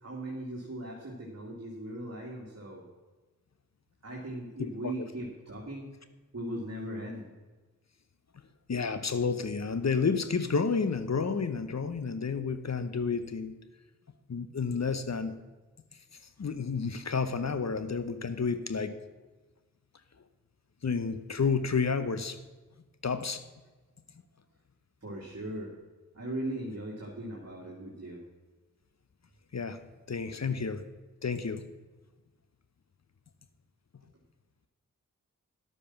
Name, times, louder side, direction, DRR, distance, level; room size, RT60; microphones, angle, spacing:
voice 1, 0.0-2.8 4.0-5.9 6.3-7.3 25.0-25.7 26.1-28.2, right 1 dB, 45° right, -2 dB, 2.3 m, -38 dB
voice 2, 4.6-4.9 8.7-13.6 14.3-15.4 16.4-19.0 20.8-22.4 23.0-23.4 29.5-29.8 30.1-30.8 31.2-31.6, left 5 dB, 50° left, 12 dB, 0.9 m, -30 dB
11.0 x 8.6 x 5.9 m, 1.2 s
cardioid pair, 40°, 34 cm